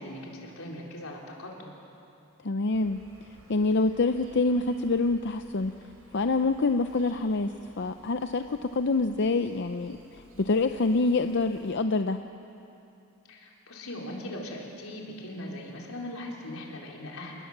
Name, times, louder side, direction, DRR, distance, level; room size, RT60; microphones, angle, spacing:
voice 1, 0.0-1.7 13.3-17.4, left 1 dB, 85° left, -2 dB, 4.2 m, -40 dB
voice 2, 2.4-3.0 3.5-5.7 6.1-7.5 7.8-12.2, left 3 dB, 55° left, 8 dB, 0.6 m, -26 dB
Insect, 2.7-11.7, right 1 dB, 80° right, 4.6 m, -56 dB
27.0 x 20.0 x 7.4 m, 2.8 s
head